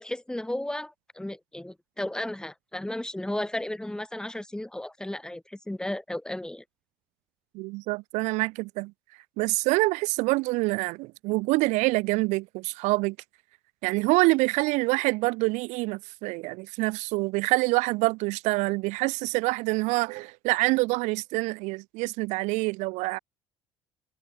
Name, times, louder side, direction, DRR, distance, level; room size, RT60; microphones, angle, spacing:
voice 1, 0.0-6.6, left 1 dB, 5° left, 1.1 m, -34 dB
voice 2, 7.5-8.9 9.4-13.2 13.8-23.2, right 24 dB, 75° right, 0.5 m, -26 dB
supercardioid pair, 85°, 12 cm